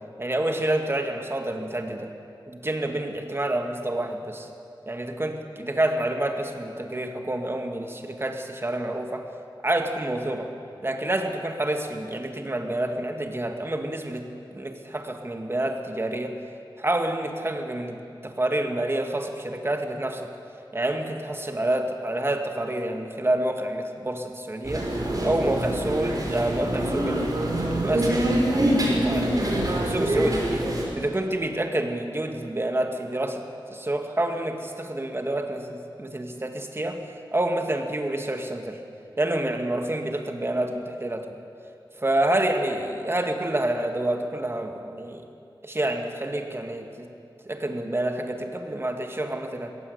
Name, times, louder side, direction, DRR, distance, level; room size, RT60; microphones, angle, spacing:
voice 1, 0.2-2.1 2.5-4.5 4.9-9.3 9.6-10.5 10.8-16.4 16.8-20.3 20.7-24.9 25.2-28.4 28.8-30.7 30.9-33.4 33.7-37.0 37.3-38.8 39.2-41.4 41.9-45.2 45.6-47.1 47.4-49.7, right 1 dB, 30° right, 5 dB, 1.9 m, -28 dB
sound 1, 24.6-30.8, right 1 dB, 45° right, 5.1 m, -25 dB
22.0 x 16.5 x 8.0 m, 2.6 s
wide cardioid pair, 90°, 9 cm